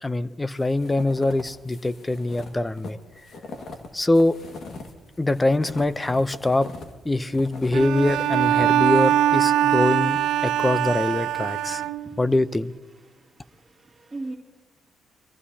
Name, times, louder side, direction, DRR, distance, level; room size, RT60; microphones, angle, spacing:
voice 1, 0.0-3.0 3.9-4.4 5.2-6.7 7.0-11.8 12.2-12.7, left 2 dB, 15° left, 15 dB, 0.6 m, -23 dB
sound 1, 0.6-6.9 7.3-8.7, left 3 dB, 60° left, 1.9 m, -41 dB
Bowed string instrument, 7.7-12.3, right 11 dB, 85° right, 0.5 m, -22 dB
voice 2, 11.9-12.2 13.1-14.3, right 2 dB, 15° right, -6 dB, 2.5 m, -39 dB
23.5 x 15.0 x 2.8 m, 1.3 s
cardioid pair, 90°, 0 cm